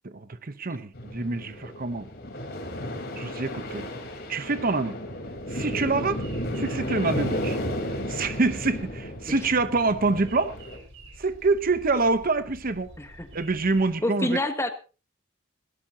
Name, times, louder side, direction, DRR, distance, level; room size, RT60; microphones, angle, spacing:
voice 1, 0.0-2.1 3.2-3.9 4.3-5.0 5.5-6.2 6.6-7.6 8.1-10.6 11.2-12.9 13.3-14.4, right 3 dB, 45° right, 11 dB, 0.9 m, -26 dB
sound 1, 0.9-10.8, equal, 50° left, 3.9 m, -33 dB
sound 2, 5.2-13.9, right 1 dB, 75° right, 5.2 m, -48 dB
voice 2, 14.0-14.7, left 1 dB, 15° left, 7 dB, 1.5 m, -28 dB
20.0 x 16.5 x 2.8 m, 0.35 s
head